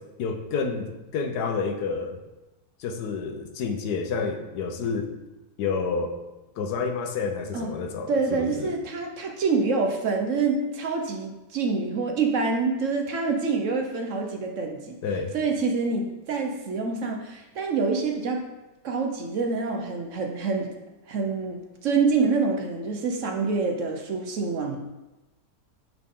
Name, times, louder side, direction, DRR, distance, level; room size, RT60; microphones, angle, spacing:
voice 1, 0.2-2.2 2.8-5.1 5.6-6.1 6.6-8.7 15.0-15.3, left 5 dB, 85° left, 6 dB, 1.3 m, -29 dB
voice 2, 8.1-15.0 15.3-18.5 18.8-20.7 21.1-24.8, right 4 dB, 60° right, 3 dB, 0.9 m, -26 dB
9.1 x 4.0 x 3.7 m, 1.0 s
omnidirectional pair, 1.7 m